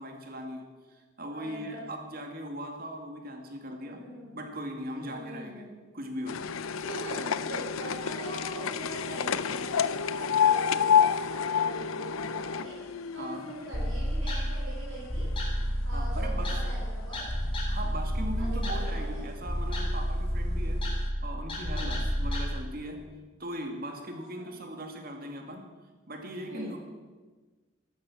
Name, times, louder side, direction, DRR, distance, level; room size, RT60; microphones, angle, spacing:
voice 1, 0.0-4.0 4.3-5.7 5.9-6.5 13.2-13.5 15.9-16.6 17.7-20.8 21.2-23.1 23.4-25.7 26.1-26.8, equal, 45° right, 4 dB, 2.2 m, -39 dB
voice 2, 1.3-1.8 3.8-4.4 5.0-5.7 6.8-12.8 13.1-15.3 15.8-17.2 18.4-19.2 21.7-22.0 24.0-24.1 24.3-24.6 26.5-26.8, right 1 dB, 75° right, -6 dB, 6.2 m, -42 dB
sound 1, 6.3-14.5 14.9-15.8 16.5-16.6 16.8-16.9 17.2-17.3 18.2-18.3 18.9-19.0 19.7-19.8 20.2-20.3, left 7 dB, 90° left, 0.6 m, -29 dB
sound 2, 13.7-22.5, equal, 25° left, 3.6 m, -30 dB
14.5 x 12.0 x 7.2 m, 1.3 s
head